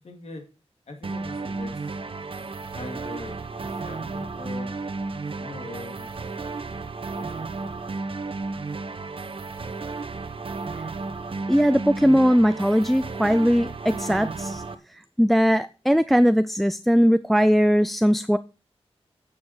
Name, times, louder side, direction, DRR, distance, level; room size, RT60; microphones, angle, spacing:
voice 1, 0.0-0.5 0.9-1.8 2.7-4.8 5.4-6.1 7.1-7.8, left 2 dB, 80° left, 3 dB, 2.3 m, -41 dB
sound 1, 1.0-14.7, right 3 dB, 55° right, 0.9 m, -33 dB
voice 2, 11.5-14.6 15.2-18.4, equal, ahead, 13 dB, 0.3 m, -19 dB
8.7 x 7.2 x 4.7 m, 0.33 s
wide cardioid pair, 95°, 11 cm